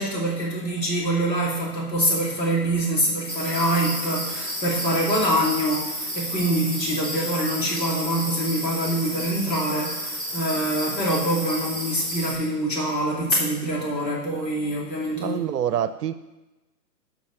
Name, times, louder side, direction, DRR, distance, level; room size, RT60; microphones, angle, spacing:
voice 1, 0.0-15.4, right 1 dB, 90° left, -5 dB, 3.2 m, -25 dB
sound 1, 3.3-12.3, equal, 15° left, 3.3 m, -31 dB
voice 2, 15.2-16.1, right 10 dB, 70° right, 12 dB, 0.6 m, -26 dB
11.5 x 5.1 x 4.9 m, 1.1 s
hypercardioid pair, 135°, 49 cm